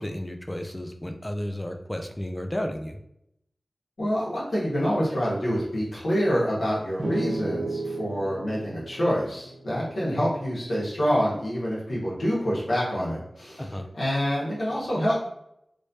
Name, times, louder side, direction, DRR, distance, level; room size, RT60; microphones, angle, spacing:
voice 1, 0.0-3.0 13.6-13.8, left 1 dB, 20° left, 5 dB, 0.5 m, -32 dB
voice 2, 4.0-13.7 13.9-15.1, equal, 85° left, -8 dB, 1.5 m, -26 dB
sound 1, 7.0-10.6, right 2 dB, 25° right, 1.4 m, -33 dB
3.2 x 3.2 x 2.7 m, 0.77 s
cardioid pair, 45°, 0 cm